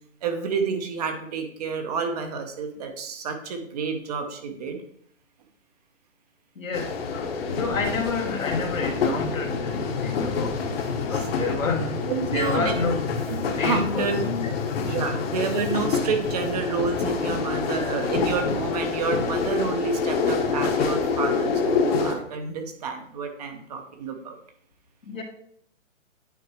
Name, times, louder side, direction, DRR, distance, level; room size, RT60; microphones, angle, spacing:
voice 1, 0.2-4.8 11.1-11.5 12.1-12.8 13.3-14.2 14.9-24.4, right 5 dB, 30° right, 5 dB, 0.8 m, -29 dB
voice 2, 6.6-7.2 7.6-10.6 10.9-12.0 12.3-13.0 13.4-14.5 15.0-15.3 25.0-25.2, left 4 dB, 85° left, 1 dB, 1.7 m, -30 dB
sound 1, 6.7-22.1, left 5 dB, 50° left, 1.2 m, -27 dB
9.3 x 4.5 x 3.2 m, 0.66 s
hypercardioid pair, 145°, 39 cm